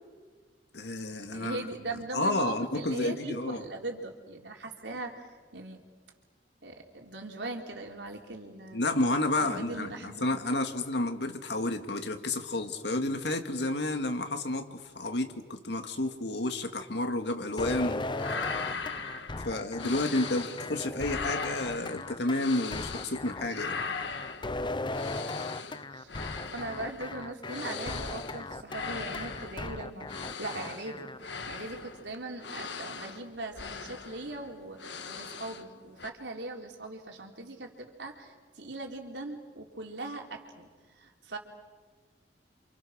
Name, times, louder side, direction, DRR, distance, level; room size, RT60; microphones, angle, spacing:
voice 1, 0.7-1.6 2.1-3.6 8.7-18.0 19.4-23.7, left 2 dB, 70° left, 6 dB, 2.3 m, -31 dB
voice 2, 1.3-5.8 6.6-8.8 9.4-10.2 19.8-20.0 25.9-26.1 26.5-40.7 41.0-41.4, right 2 dB, 80° right, 1 dB, 3.8 m, -40 dB
sound 1, 17.6-17.9 18.1-20.7 21.0-23.2 23.5-35.7 36.0-36.1, left 5 dB, 90° left, 1.7 m, -39 dB
sound 2, 17.6-31.2, left 2 dB, 25° left, 0.7 m, -37 dB
30.0 x 27.5 x 6.5 m, 1.4 s
head